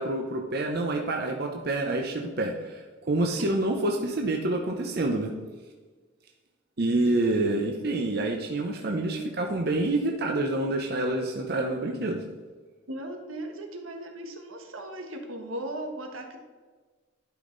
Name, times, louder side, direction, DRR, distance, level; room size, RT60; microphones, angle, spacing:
voice 1, 0.0-5.3 6.8-12.2, right 2 dB, 50° right, 1 dB, 0.8 m, -27 dB
voice 2, 12.9-16.4, right 1 dB, 85° right, 3 dB, 1.4 m, -37 dB
12.0 x 5.4 x 3.9 m, 1.4 s
head